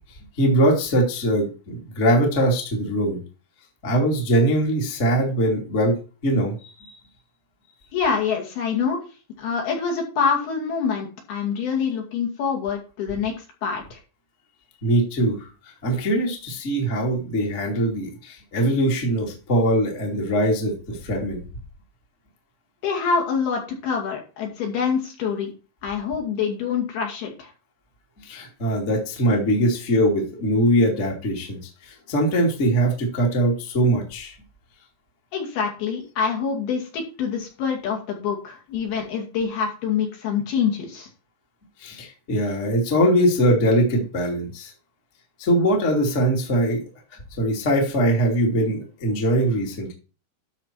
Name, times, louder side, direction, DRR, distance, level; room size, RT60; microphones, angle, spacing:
voice 1, 0.4-3.2 3.8-6.0 6.2-7.0 14.8-21.4 28.2-34.3 41.8-44.7 45.4-46.8 47.4-49.9, right 1 dB, 20° left, -1 dB, 1.9 m, -22 dB
voice 2, 7.9-9.0 9.4-14.0 22.8-25.5 25.8-27.5 35.3-41.1, left 6 dB, 60° left, 1 dB, 4.1 m, -26 dB
12.5 x 5.1 x 4.5 m, 0.34 s
omnidirectional pair, 5.4 m